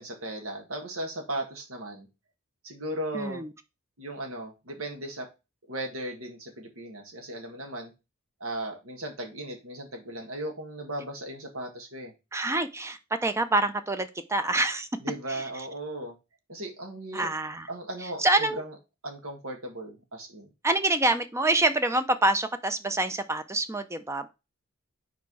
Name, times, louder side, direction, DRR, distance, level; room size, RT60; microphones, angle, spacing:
voice 1, 0.0-2.1 2.6-3.4 4.0-5.3 5.7-7.9 8.4-12.1 15.0-16.2 16.5-17.3 17.7-18.8 19.0-20.5, right 1 dB, 75° right, 2 dB, 1.8 m, -37 dB
voice 2, 3.1-3.5 12.3-14.9 15.3-15.7 17.1-17.7 18.2-18.6 20.6-24.3, right 2 dB, 15° right, 10 dB, 0.5 m, -26 dB
4.7 x 4.3 x 4.7 m, 0.26 s
head